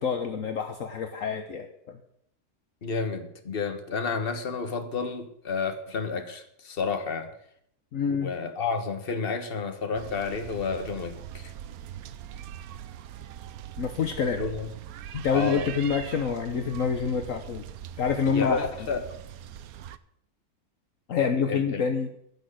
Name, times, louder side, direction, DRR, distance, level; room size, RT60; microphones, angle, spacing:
voice 1, 0.0-2.0 7.9-8.3 13.8-14.4 15.1-17.6 18.0-18.7 21.1-22.1, left 6 dB, 60° left, 6 dB, 1.3 m, -27 dB
voice 2, 2.8-7.3 8.2-11.5 14.4-14.7 15.3-15.7 18.3-19.0 21.2-21.8, left 5 dB, 40° left, 7 dB, 1.5 m, -31 dB
sound 1, 9.9-20.0, right 10 dB, 75° right, 1.1 m, -41 dB
15.5 x 6.4 x 7.9 m, 0.71 s
omnidirectional pair, 1.6 m